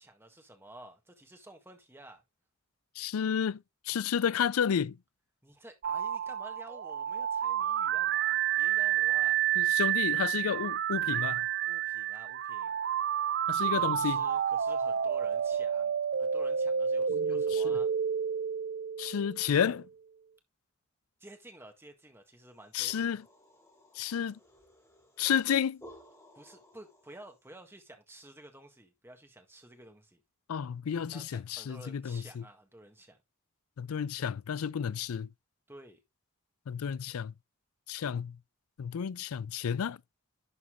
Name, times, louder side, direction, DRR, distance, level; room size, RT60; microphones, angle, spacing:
voice 1, 0.0-2.2 5.4-9.4 11.6-12.8 13.6-17.9 21.2-23.2 26.4-30.2 31.1-33.2 35.7-36.0, right 1 dB, 10° right, 1.7 m, -52 dB
voice 2, 3.0-5.0 9.6-11.5 13.5-14.2 17.1-17.8 19.0-19.9 22.7-23.2 24.0-24.4 25.2-25.8 30.5-32.4 33.8-35.3 36.7-37.3 37.9-38.4 38.8-40.0, left 8 dB, 90° left, 0.4 m, -31 dB
sound 1, 5.8-19.7, right 9 dB, 50° right, 0.4 m, -30 dB
sound 2, 22.5-27.4, equal, 15° left, 2.8 m, -57 dB
11.5 x 4.2 x 3.7 m
head